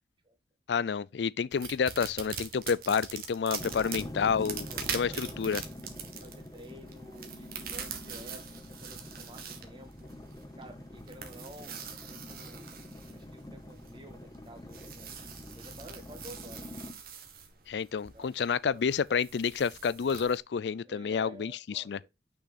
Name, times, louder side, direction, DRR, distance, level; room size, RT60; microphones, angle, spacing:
voice 1, 0.7-4.7 4.9-5.6 17.7-22.0, left 6 dB, 75° left, 0.4 m, -29 dB
sound 1, 1.5-20.4, right 7 dB, 55° right, 1.6 m, -44 dB
sound 2, 3.6-16.9, left 1 dB, 20° left, 1.1 m, -46 dB
voice 2, 3.6-5.3 6.0-10.1 10.6-12.7 13.1-15.1 15.5-16.7 18.1-18.9 20.8-22.1, right 1 dB, 30° right, 1.6 m, -51 dB
6.3 x 5.5 x 4.0 m
head